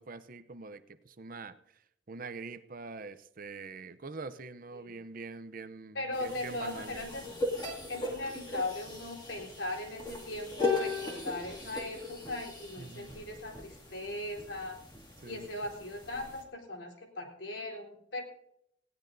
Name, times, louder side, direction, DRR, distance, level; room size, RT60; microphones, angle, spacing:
voice 1, 0.0-1.5 2.1-7.1 12.8-13.2 15.2-15.5, right 3 dB, 45° right, 11 dB, 0.7 m, -44 dB
voice 2, 5.9-7.2 7.9-14.8 15.3-18.2, left 2 dB, 70° left, 1 dB, 3.9 m, -39 dB
sound 1, 6.1-16.4, left 3 dB, 25° left, 2.4 m, -38 dB
19.5 x 16.5 x 2.7 m, 0.77 s
head